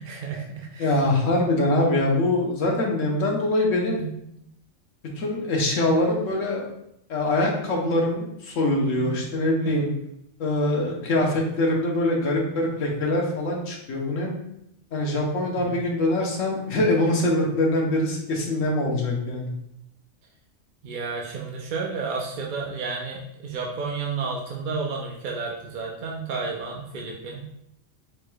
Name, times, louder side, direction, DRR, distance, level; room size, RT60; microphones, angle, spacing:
voice 1, 0.0-0.9 4.0-4.3 9.0-9.3 9.6-9.7 15.6-15.8 20.8-27.5, right 4 dB, 55° right, -1 dB, 0.5 m, -32 dB
voice 2, 0.8-4.0 5.2-6.6 7.1-9.9 10.4-14.4 14.9-19.5, left 1 dB, 70° left, -1 dB, 1.3 m, -23 dB
4.6 x 4.4 x 2.3 m, 0.77 s
omnidirectional pair, 1.4 m